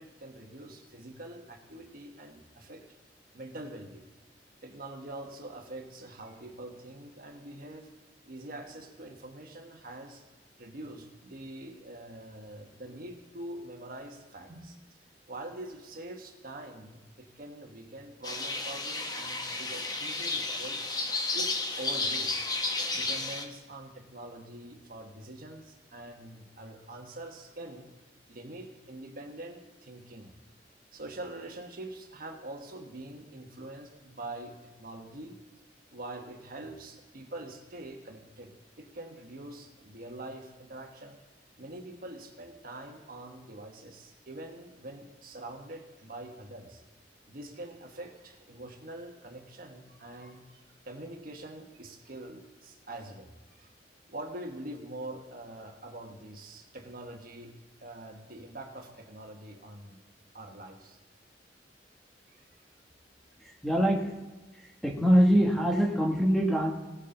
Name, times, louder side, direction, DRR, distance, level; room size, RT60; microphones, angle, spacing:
voice 1, 0.0-2.8 3.3-4.0 4.6-7.9 8.2-10.2 10.6-14.8 15.3-20.9 21.3-22.5 22.9-27.9 28.3-30.3 30.9-35.4 35.9-38.5 38.8-41.2 41.6-46.8 47.3-53.7 54.0-57.5 57.8-60.0 60.3-61.0 62.3-62.4, right 1 dB, 55° right, 3 dB, 1.3 m, -44 dB
sound 1, 18.2-23.4, left 3 dB, 20° left, 0.9 m, -32 dB
voice 2, 63.4-64.1 64.8-66.7, equal, ahead, 0 dB, 1.2 m, -24 dB
17.5 x 6.5 x 3.8 m, 1.2 s
head